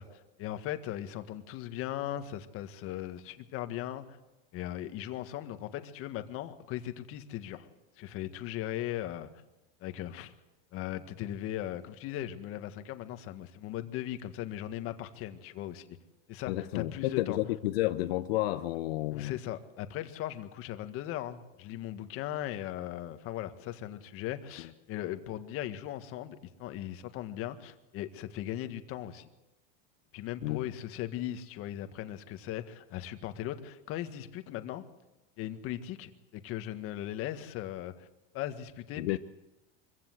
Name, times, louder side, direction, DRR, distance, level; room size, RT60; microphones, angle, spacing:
voice 1, 0.0-4.2 4.5-7.7 8.0-9.3 9.8-10.3 10.7-15.9 16.3-17.4 19.1-29.3 30.1-34.8 35.4-38.1 38.3-39.2, left 12 dB, 45° left, 9 dB, 1.7 m, -38 dB
voice 2, 16.5-19.4 30.4-30.7 39.0-39.2, left 16 dB, 80° left, 9 dB, 0.9 m, -31 dB
24.5 x 16.0 x 8.0 m, 1.0 s
supercardioid pair, 135°, 30 cm